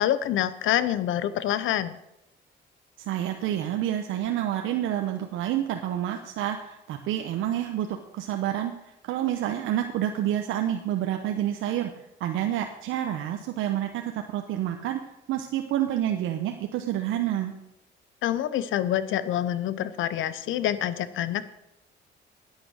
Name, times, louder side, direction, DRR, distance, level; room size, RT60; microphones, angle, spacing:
voice 1, 0.0-1.9 18.2-21.4, left 11 dB, 80° left, 15 dB, 0.8 m, -26 dB
voice 2, 3.0-8.7 9.0-11.9 12.2-14.0 14.3-15.0 15.3-17.5, right 11 dB, 90° right, 5 dB, 0.9 m, -28 dB
10.0 x 9.4 x 6.4 m, 0.88 s
cardioid pair, 90°, 20 cm